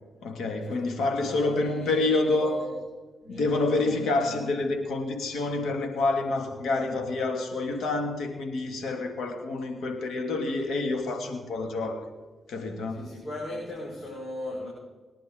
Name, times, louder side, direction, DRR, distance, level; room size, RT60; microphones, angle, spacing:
voice 1, 0.2-2.7 3.3-12.1 12.5-13.0, left 2 dB, 85° left, 5 dB, 2.3 m, -28 dB
voice 2, 1.3-2.7 3.2-4.1 12.9-14.7, left 1 dB, 65° left, -3 dB, 5.3 m, -38 dB
27.5 x 10.5 x 3.9 m, 1.3 s
cardioid pair, 55°, 0 cm